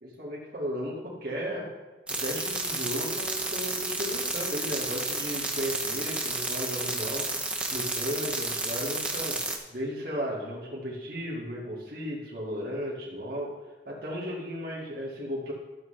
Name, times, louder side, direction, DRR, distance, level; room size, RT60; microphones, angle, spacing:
voice 1, 0.0-1.7 2.2-7.3 7.7-9.4 9.7-13.6 13.9-15.5, equal, 55° right, -5 dB, 1.9 m, -35 dB
sound 1, 2.1-9.6, right 2 dB, 5° right, 0.8 m, -31 dB
12.5 x 7.3 x 3.3 m, 1.3 s
head